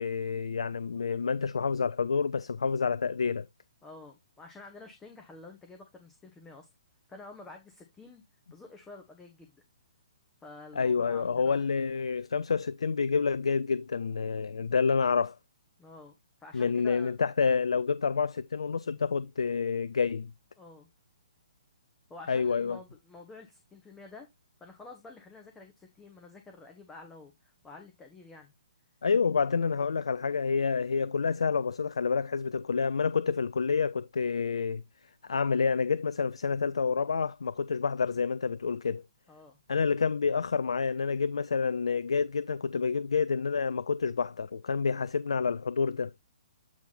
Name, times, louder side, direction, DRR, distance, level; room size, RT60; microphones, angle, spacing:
voice 1, 0.0-3.5 10.8-15.4 16.5-20.3 22.3-22.8 29.0-34.8 35.2-39.0 39.7-46.1, left 5 dB, 65° left, 0.3 m, -28 dB
voice 2, 3.8-6.7 7.1-8.2 8.5-9.5 10.4-11.6 15.8-16.1 16.4-17.1 20.6-20.9 22.1-24.3 24.6-28.5 39.3-39.6, left 3 dB, 10° left, 1.2 m, -49 dB
8.4 x 3.5 x 4.1 m
figure-of-eight pair, 125°, 3 cm